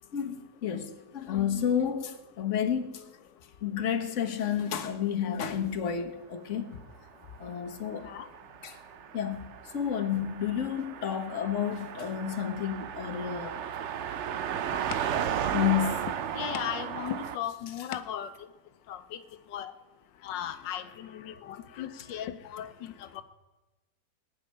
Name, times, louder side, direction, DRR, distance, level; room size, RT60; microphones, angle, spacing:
voice 1, 0.1-3.0 3.6-6.9 7.4-8.1 8.6-8.8 9.1-13.6 15.5-16.1, left 9 dB, 45° left, 1.4 m, -31 dB
Car passing by, 7.2-17.4, right 9 dB, 65° right, 0.7 m, -35 dB
voice 2, 16.3-18.3 18.9-19.2 19.5-19.7 20.2-23.2, left 10 dB, 90° left, 1.4 m, -37 dB
19.0 x 6.7 x 9.6 m
omnidirectional pair, 1.9 m